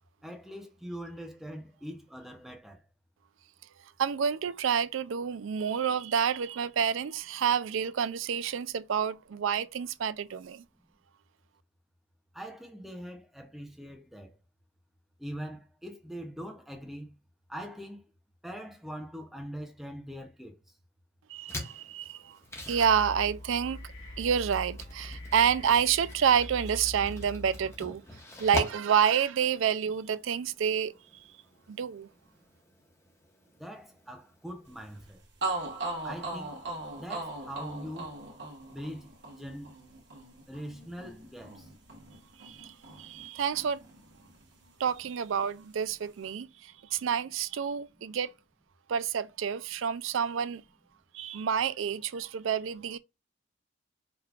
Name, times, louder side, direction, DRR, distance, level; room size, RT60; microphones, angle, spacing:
voice 1, 0.2-2.8 12.3-14.4 15.2-17.1 17.5-18.0 18.4-20.6 33.6-35.2 36.0-36.6 36.9-38.2 38.7-39.7 40.5-41.7, equal, ahead, 0.7 m, -42 dB
voice 2, 4.0-10.6 21.3-22.4 22.7-23.8 24.2-28.0 28.4-30.9 31.7-32.1 42.4-43.8 44.8-48.3 48.9-50.6 51.1-53.0, right 7 dB, 80° right, 0.4 m, -29 dB
sound 1, 21.5-35.1, left 1 dB, 15° left, 1.1 m, -44 dB
sound 2, 22.5-27.8, left 1 dB, 85° left, 2.7 m, -43 dB
sound 3, 35.0-35.1 35.4-43.3 43.5-44.7, right 2 dB, 65° right, 1.5 m, -39 dB
5.0 x 3.2 x 2.4 m
head